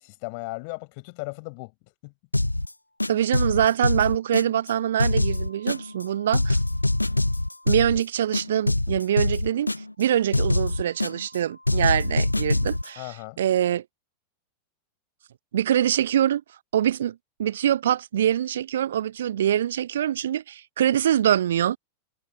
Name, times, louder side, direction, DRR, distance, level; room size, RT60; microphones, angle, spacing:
voice 1, 0.0-1.7 2.0-2.1 13.0-13.4, left 33 dB, 45° left, 5.8 m, -36 dB
sound 1, 2.3-2.7 3.0-4.7 5.0-6.0 6.3-8.0 8.3-10.0 10.3-11.4 11.7-12.9, left 2 dB, 85° left, 0.5 m, -24 dB
voice 2, 3.1-6.6 7.7-9.7 10.0-13.8 15.5-16.4 16.7-21.8, right 10 dB, 60° right, 0.9 m, -24 dB
figure-of-eight pair, 90°, 0 cm